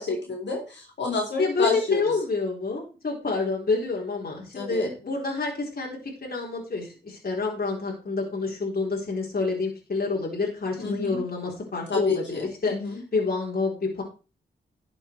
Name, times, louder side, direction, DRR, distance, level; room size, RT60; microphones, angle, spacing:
voice 1, 0.0-2.2 4.5-4.9 10.8-11.2 11.9-13.0, left 3 dB, 65° left, 0 dB, 4.3 m, -29 dB
voice 2, 1.4-12.7 13.1-14.0, left 3 dB, 50° left, -2 dB, 4.2 m, -28 dB
11.5 x 7.2 x 4.6 m, 0.33 s
supercardioid pair, 40°, 20 cm